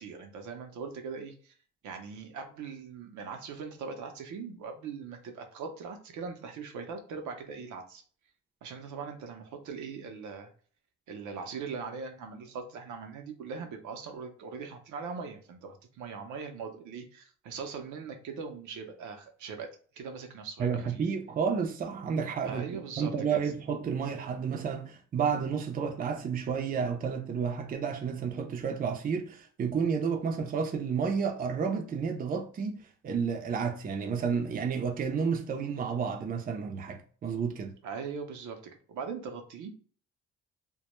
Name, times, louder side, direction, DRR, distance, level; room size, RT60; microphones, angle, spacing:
voice 1, 0.0-1.5 1.8-8.0 8.6-10.5 11.1-19.7 19.9-21.0 22.4-23.1 37.8-39.7, right 5 dB, 75° right, 0.6 m, -40 dB
voice 2, 20.6-22.6 23.0-37.7, right 6 dB, 30° right, 0.4 m, -31 dB
2.2 x 2.1 x 2.9 m
cardioid pair, 90°, 30 cm